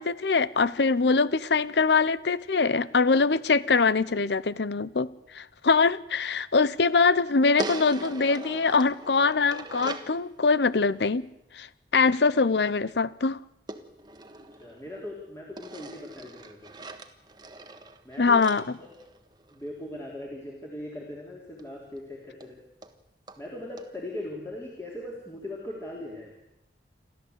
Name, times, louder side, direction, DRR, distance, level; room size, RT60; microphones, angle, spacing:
voice 1, 0.0-11.2 11.5-11.7 11.9-13.4 18.2-18.6, left 4 dB, 75° left, 18 dB, 0.7 m, -23 dB
sound 1, 7.6-10.2 13.7-15.1 15.6-19.7 21.6-21.7 22.0-22.1 22.4-22.5 22.8-22.9 23.3-23.4 23.8-23.9, right 2 dB, 25° right, 1.4 m, -40 dB
voice 2, 14.6-16.7 18.0-18.4 18.8-18.9 19.5-22.6 23.4-26.3, left 1 dB, 15° left, -3 dB, 3.5 m, -39 dB
29.0 x 13.0 x 8.1 m, 0.89 s
head